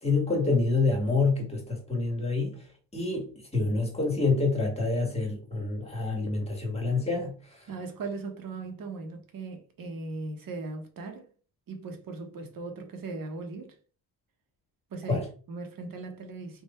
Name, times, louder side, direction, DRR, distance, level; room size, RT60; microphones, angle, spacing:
voice 1, 0.0-2.6 2.9-7.6 15.1-15.2, left 3 dB, 15° left, 1.8 m, -27 dB
voice 2, 7.7-11.3 11.7-13.7 14.9-16.6, right 3 dB, 55° right, 1.2 m, -38 dB
3.6 x 2.7 x 4.3 m
cardioid pair, 90°, 40 cm